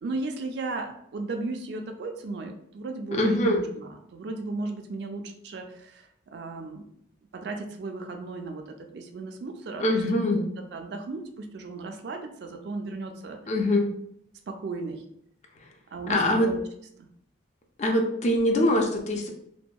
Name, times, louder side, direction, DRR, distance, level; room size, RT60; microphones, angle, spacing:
voice 1, 0.0-6.8 7.3-9.8 10.3-10.4 10.7-13.4 14.5-15.0 15.9-16.6 17.0-17.1, right 3 dB, 60° right, 4 dB, 0.3 m, -35 dB
voice 2, 3.1-3.6 9.8-10.4 13.5-13.9 16.1-16.5 17.8-19.3, left 1 dB, 35° left, 2 dB, 0.4 m, -23 dB
2.6 x 2.2 x 2.3 m, 0.71 s
head